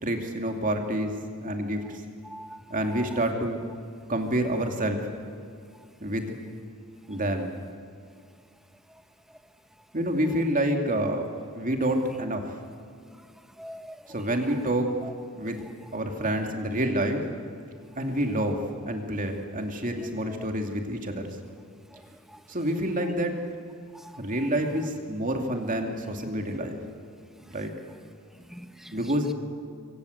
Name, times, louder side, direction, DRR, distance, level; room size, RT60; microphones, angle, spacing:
voice 1, 0.0-2.0 2.7-3.6 4.1-5.1 6.0-6.4 7.1-7.5 9.9-12.6 14.1-14.9 15.3-15.6 15.9-17.2 18.0-21.3 22.5-23.4 24.2-26.8 27.5-27.7 28.9-29.3, right 1 dB, 35° right, 3 dB, 2.6 m, -28 dB
voice 2, 2.2-2.6 2.9-3.1 13.6-14.0 15.0-15.1 21.9-22.0 22.3-22.4 23.9-24.1 28.5-29.0, equal, ahead, 9 dB, 1.0 m, -43 dB
27.5 x 25.0 x 8.1 m, 2.2 s
head